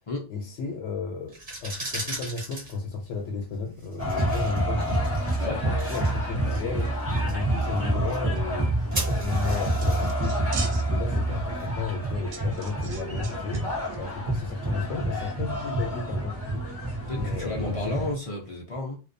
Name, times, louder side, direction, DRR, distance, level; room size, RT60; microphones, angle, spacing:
voice 1, 0.3-16.6 17.1-18.0, left 4 dB, 85° left, 0.9 m, -34 dB
sound 1, 1.2-12.1, right 1 dB, 40° right, 1.3 m, -40 dB
sound 2, 4.0-18.1, right 1 dB, 15° right, 0.5 m, -28 dB
sound 3, 9.8-11.2 11.5-11.6 12.3-13.6 13.8-14.0, right 5 dB, 80° right, 0.9 m, -40 dB
voice 2, 17.1-19.0, left 2 dB, 65° left, 0.3 m, -32 dB
2.4 x 2.2 x 2.5 m
omnidirectional pair, 1.2 m